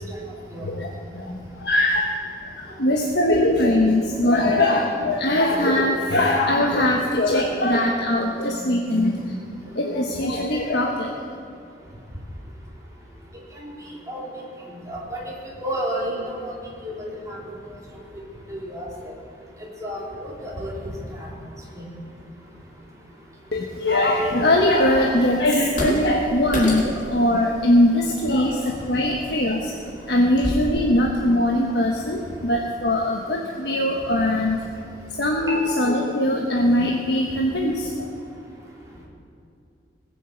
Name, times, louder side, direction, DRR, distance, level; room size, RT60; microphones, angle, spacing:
voice 1, 0.6-2.1 2.4-11.1 23.5-29.7 30.1-34.6 35.1-38.1, left 1 dB, 65° left, -1 dB, 1.3 m, -21 dB
voice 2, 14.9-15.3 15.6-17.4 18.5-19.1 19.8-21.3 21.7-21.9 35.4-35.6, equal, 20° right, -4 dB, 3.4 m, -31 dB
sound 1, 25.5-30.7, equal, 50° left, 4.3 m, -31 dB
19.0 x 7.7 x 8.0 m, 2.4 s
head